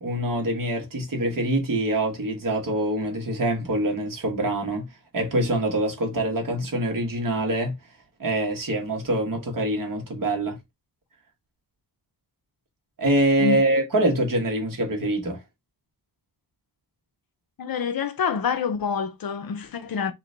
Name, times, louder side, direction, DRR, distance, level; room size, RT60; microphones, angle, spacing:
voice 1, 0.0-7.8 8.2-10.6 13.0-15.4, right 1 dB, 50° right, 1.4 m, -25 dB
voice 2, 17.6-20.1, left 6 dB, 60° left, 0.6 m, -27 dB
3.3 x 3.0 x 3.8 m
wide cardioid pair, 180°, 41 cm